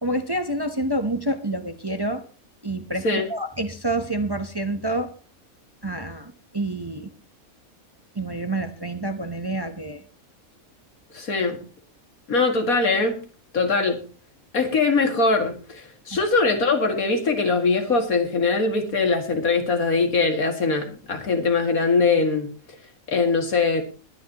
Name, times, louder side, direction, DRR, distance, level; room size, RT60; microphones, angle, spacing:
voice 1, 0.0-2.2 2.6-5.1 5.8-7.1 8.1-10.0, right 1 dB, 20° right, 7 dB, 0.9 m, -28 dB
voice 2, 11.1-11.6 12.3-13.2 13.5-14.0 14.5-22.5 23.1-23.8, left 4 dB, 80° left, 4 dB, 2.6 m, -22 dB
21.5 x 10.0 x 3.0 m, 0.36 s
omnidirectional pair, 1.5 m